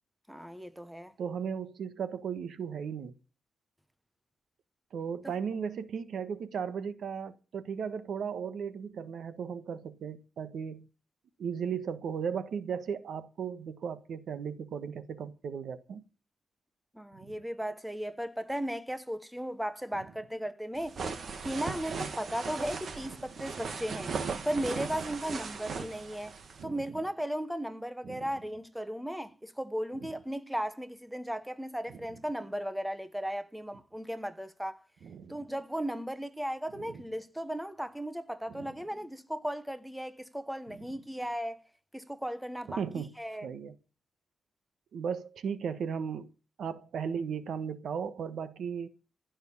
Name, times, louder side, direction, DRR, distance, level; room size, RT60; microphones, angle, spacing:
voice 1, 0.3-1.1 16.9-21.0 21.4-24.1 24.4-26.3 26.6-34.8 35.3-41.6 41.9-43.5, equal, 5° right, 1.0 m, -36 dB
voice 2, 1.2-3.1 4.9-10.9 11.4-16.0 17.2-17.3 19.9-20.0 26.6-26.8 28.0-28.3 30.0-30.1 31.9-32.0 35.0-35.4 36.8-37.0 38.5-38.7 42.7-43.1 43.4-43.7 44.9-46.3 46.6-48.9, right 7 dB, 70° right, 1.3 m, -36 dB
sound 1, 20.8-26.6, right 5 dB, 50° right, 1.8 m, -38 dB
16.0 x 6.5 x 10.0 m
wide cardioid pair, 155°, 0 cm